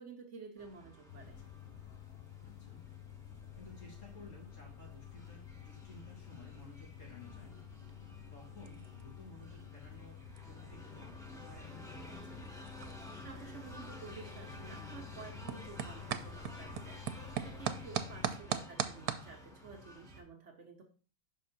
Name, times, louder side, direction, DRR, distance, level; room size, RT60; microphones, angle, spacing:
voice 1, 0.0-1.4 13.2-20.8, right 4 dB, 55° right, 4 dB, 1.0 m, -51 dB
sound 1, 0.6-20.2, equal, ahead, 1.1 m, -53 dB
sound 2, 1.1-18.3, left 11 dB, 80° left, 1.1 m, -51 dB
voice 2, 2.4-2.8 3.6-7.6 8.3-12.4 18.2-18.3, left 2 dB, 55° left, -3 dB, 2.7 m, -55 dB
sound 3, 6.6-19.3, right 10 dB, 85° right, 1.1 m, -44 dB
5.7 x 3.7 x 5.7 m, 0.38 s
omnidirectional pair, 1.6 m